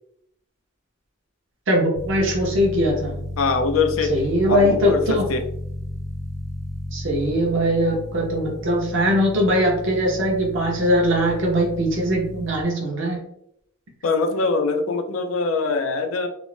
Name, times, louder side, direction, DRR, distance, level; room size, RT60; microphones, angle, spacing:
voice 1, 1.7-3.1 4.1-5.2 6.9-13.2, equal, 65° right, -1 dB, 0.7 m, -21 dB
sound 1, 1.9-12.6, equal, 15° left, 0.4 m, -33 dB
voice 2, 3.4-4.2 4.5-5.4 14.0-16.3, left 4 dB, 80° left, 7 dB, 0.4 m, -23 dB
2.5 x 2.0 x 3.1 m, 0.74 s
head